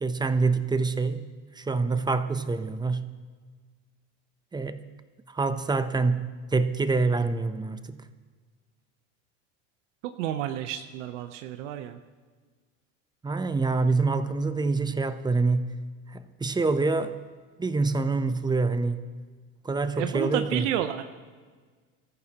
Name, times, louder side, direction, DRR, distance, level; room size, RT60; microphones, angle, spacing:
voice 1, 0.0-1.3 1.5-3.1 4.5-4.8 5.3-8.0 13.2-15.7 16.1-17.2 17.6-19.0 19.6-20.6, right 3 dB, 10° right, 11 dB, 0.7 m, -26 dB
voice 2, 10.2-12.0 20.0-21.1, right 11 dB, 85° right, 8 dB, 0.8 m, -30 dB
24.5 x 14.0 x 3.0 m, 1.5 s
supercardioid pair, 120°, 35 cm